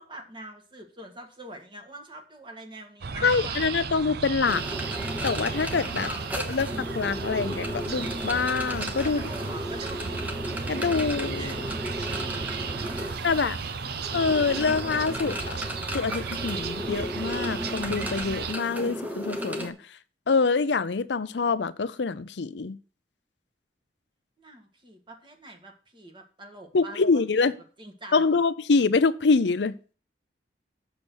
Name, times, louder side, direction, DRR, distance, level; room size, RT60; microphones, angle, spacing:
voice 1, 0.0-3.8 5.9-6.3 9.0-10.1 11.4-11.6 24.4-27.2 27.8-28.3, right 1 dB, 30° right, 4 dB, 1.7 m, -44 dB
sound 1, 3.0-18.5, right 5 dB, 60° right, 0.6 m, -34 dB
voice 2, 3.2-4.6 5.2-6.1 6.5-6.7 6.9-9.2 10.7-11.5 13.2-13.6 14.1-15.6 15.9-19.7 20.3-22.8 26.7-27.6 28.1-29.7, left 4 dB, 75° left, 14 dB, 0.6 m, -25 dB
sound 2, 4.4-19.7, equal, 10° right, 1.1 m, -35 dB
7.0 x 6.9 x 6.2 m, 0.39 s
head